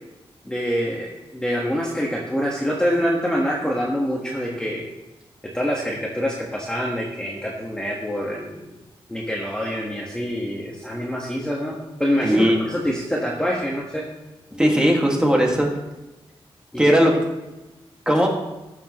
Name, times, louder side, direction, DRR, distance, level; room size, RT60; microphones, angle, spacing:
voice 1, 0.4-4.8 5.5-8.7 9.1-14.0 14.5-14.6 16.9-17.0, equal, 10° left, -3 dB, 1.4 m, -25 dB
voice 2, 12.2-12.6 14.6-15.7 16.8-17.1 18.1-18.3, equal, 10° right, -1 dB, 1.9 m, -18 dB
17.5 x 7.3 x 3.1 m, 1.0 s
wide cardioid pair, 155°, 10 cm